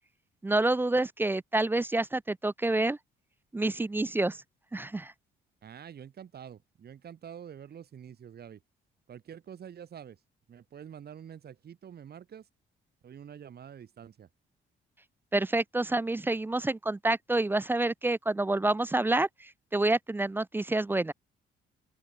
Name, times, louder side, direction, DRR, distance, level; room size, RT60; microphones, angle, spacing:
voice 1, 0.4-3.0 3.5-4.4 4.7-5.1 15.3-19.3 19.7-21.1, right 2 dB, 10° right, 0.3 m, -28 dB
voice 2, 5.6-8.6 9.1-10.2 10.5-12.5 13.0-14.3, right 8 dB, 55° right, 2.1 m, -47 dB
open air
cardioid pair, 90°, 20 cm